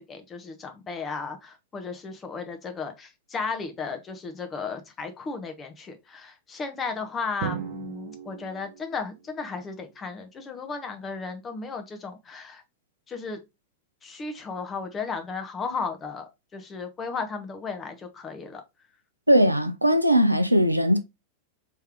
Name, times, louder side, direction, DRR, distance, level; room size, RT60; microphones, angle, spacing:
voice 1, 0.0-12.6 13.1-13.4 14.0-18.6, left 4 dB, 20° left, 0.9 m, -35 dB
Drum, 7.4-9.5, right 7 dB, 50° right, 1.0 m, -37 dB
voice 2, 19.3-21.0, equal, 85° right, 0.4 m, -19 dB
3.3 x 3.3 x 3.5 m
figure-of-eight pair, 90°, 0 cm